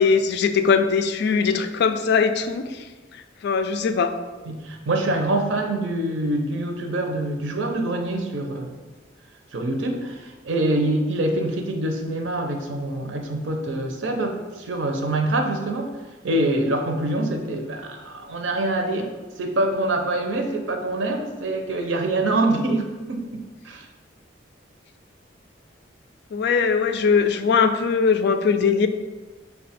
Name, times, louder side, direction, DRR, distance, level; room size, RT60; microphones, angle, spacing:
voice 1, 0.0-2.8 3.4-4.1 26.3-28.9, left 5 dB, 60° left, 9 dB, 0.3 m, -20 dB
voice 2, 4.5-8.8 9.5-16.0 16.2-23.9, right 1 dB, 80° right, 4 dB, 0.6 m, -25 dB
5.3 x 2.3 x 4.2 m, 1.2 s
head